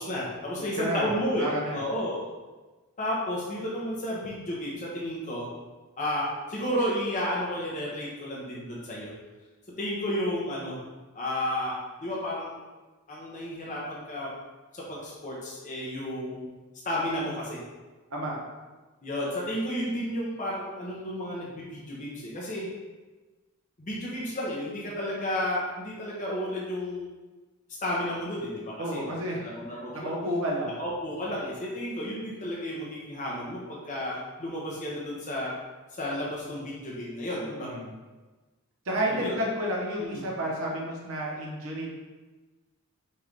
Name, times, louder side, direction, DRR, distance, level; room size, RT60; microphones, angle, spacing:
voice 1, 0.0-2.2 3.0-5.5 6.0-9.1 9.8-10.8 11.1-12.6 13.1-14.3 14.7-16.5 16.8-17.6 19.0-22.7 23.8-27.0 27.8-30.1 30.8-35.5 35.9-37.7 39.1-39.4 40.0-40.2, left 1 dB, 35° left, -5 dB, 0.8 m, -32 dB
voice 2, 0.8-1.8 18.1-18.4 28.8-29.4 29.7-30.8 37.4-37.9 38.8-41.9, equal, 65° right, -3 dB, 1.0 m, -31 dB
5.3 x 2.6 x 3.2 m, 1.2 s
head